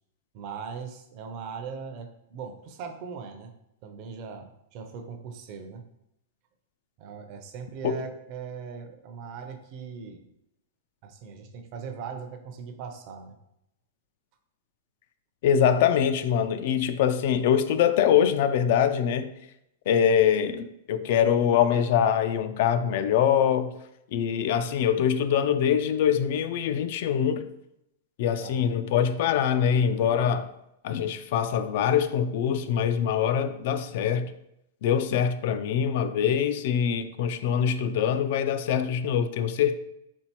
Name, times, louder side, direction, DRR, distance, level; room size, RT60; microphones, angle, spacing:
voice 1, 0.3-3.5 3.8-5.8 7.0-10.2 11.0-13.4 28.4-28.7, right 6 dB, 40° right, 0.5 m, -39 dB
voice 2, 15.4-19.3 19.9-23.8 24.1-27.4 28.2-30.5 30.8-34.3 34.8-39.7, left 8 dB, 55° left, 0.3 m, -24 dB
4.4 x 3.7 x 2.9 m
supercardioid pair, 155°, 0 cm